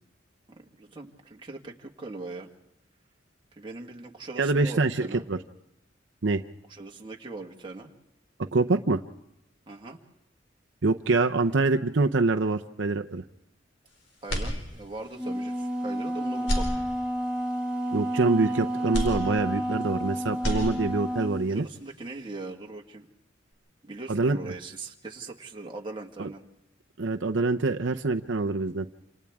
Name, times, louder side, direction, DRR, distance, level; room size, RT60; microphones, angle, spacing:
voice 1, 0.5-2.5 3.5-5.3 6.7-7.9 9.7-10.0 14.2-16.7 21.5-23.1 23.8-26.4, right 3 dB, 25° right, 0 dB, 1.7 m, -40 dB
voice 2, 4.4-5.4 6.2-6.4 8.4-9.0 10.8-13.2 17.9-21.7 24.1-24.4 26.2-26.3 27.0-28.9, right 3 dB, 75° right, 5 dB, 0.7 m, -25 dB
sound 1, 14.3-15.2 15.6-15.7 16.4-17.4 18.9-20.0 20.3-21.2, equal, 80° left, 4.4 m, -31 dB
Wind instrument woodwind instrument, 15.1-21.4, equal, 5° right, 1.4 m, -30 dB
28.0 x 27.5 x 3.6 m, 0.85 s
head